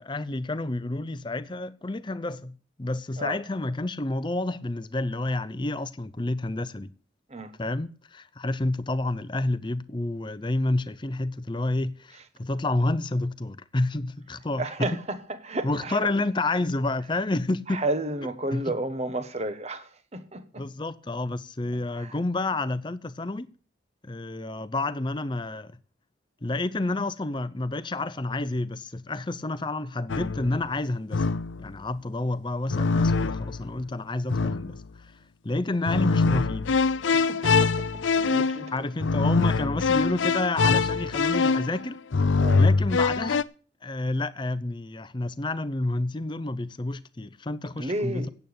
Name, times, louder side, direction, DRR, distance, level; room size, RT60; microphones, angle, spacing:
voice 1, 0.0-2.5 2.8-6.9 7.6-15.0 15.6-17.8 18.5-18.6 20.6-23.5 24.0-25.8 26.4-31.3 31.6-35.1 35.4-36.7 38.7-42.0 42.6-43.4 43.8-48.3, left 2 dB, 25° left, 0.6 m, -29 dB
voice 2, 14.6-15.2 15.4-16.1 17.7-20.7 22.0-22.1 37.1-37.9 38.1-38.7 42.4-42.6 47.8-48.3, right 2 dB, 35° right, 1.2 m, -32 dB
sound 1, 30.1-30.6 31.1-31.7 32.7-33.7 34.3-34.8 35.9-43.4, left 4 dB, 80° left, 0.6 m, -24 dB
9.1 x 8.1 x 8.7 m
head